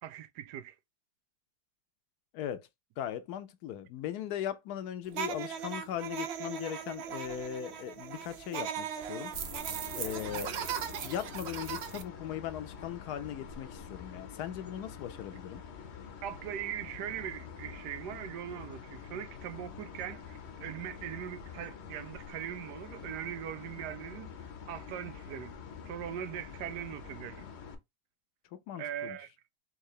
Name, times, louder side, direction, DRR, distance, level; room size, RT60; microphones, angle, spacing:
voice 1, 0.0-0.8 10.3-10.5 16.2-24.3 24.7-25.5 25.8-27.4 28.8-29.3, right 10 dB, 90° right, 1.2 m, -40 dB
voice 2, 2.3-2.7 3.0-9.3 9.9-10.5 11.0-15.6 28.7-29.2, left 10 dB, 75° left, 1.1 m, -38 dB
sound 1, 5.1-12.0, right 8 dB, 70° right, 0.6 m, -38 dB
sound 2, 9.3-27.7, left 6 dB, 55° left, 0.8 m, -47 dB
3.7 x 2.9 x 3.1 m
omnidirectional pair, 1.7 m